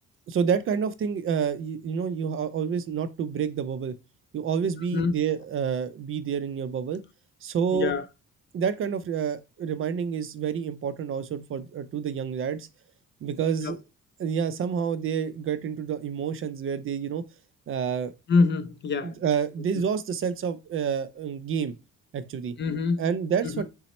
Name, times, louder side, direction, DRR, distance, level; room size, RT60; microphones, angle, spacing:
voice 1, 0.3-3.9 4.3-7.0 7.4-7.9 8.5-12.7 13.2-13.8 14.2-17.2 17.7-18.1 19.0-21.7 22.1-22.5 23.0-23.6, right 7 dB, 45° right, 0.4 m, -28 dB
voice 2, 7.7-8.0 13.6-13.7 18.3-19.2 22.6-23.1 23.4-23.6, left 4 dB, 40° left, 0.4 m, -25 dB
4.0 x 2.0 x 4.1 m
cardioid pair, 90°, 30 cm